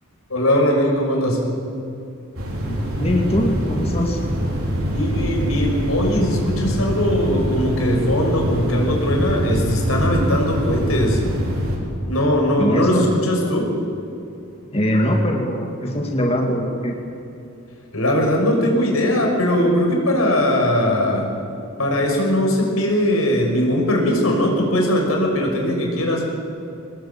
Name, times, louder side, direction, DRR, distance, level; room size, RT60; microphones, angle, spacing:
voice 1, 0.3-1.4 4.9-11.2 12.1-13.7 17.9-21.3 21.8-26.2, equal, 90° left, 1 dB, 6.1 m, -20 dB
sound 1, 2.3-11.8, equal, 90° right, 5.6 m, -24 dB
voice 2, 2.7-4.2 12.6-13.1 14.7-17.0, left 1 dB, 30° left, 1 dB, 2.3 m, -22 dB
24.5 x 19.5 x 8.8 m, 2.6 s
head